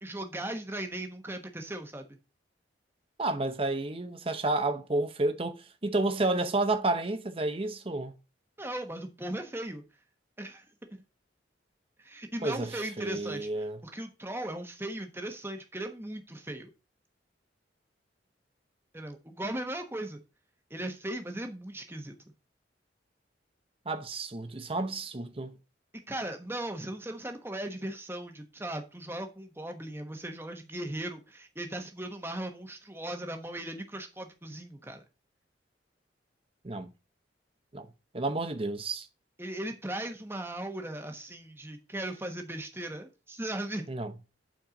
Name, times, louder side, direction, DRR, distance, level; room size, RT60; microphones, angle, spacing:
voice 1, 0.0-2.2 8.6-9.8 10.4-10.6 10.9-11.0 12.0-16.7 18.9-20.2 20.7-22.1 26.1-35.0 39.4-43.9, right 1 dB, 15° right, 1.2 m, -38 dB
voice 2, 3.2-5.6 5.8-8.1 12.4-13.8 23.9-25.5 36.6-36.9 37.7-37.9 38.1-39.1 43.9-44.1, right 2 dB, 30° right, 0.8 m, -30 dB
8.6 x 4.4 x 5.2 m
head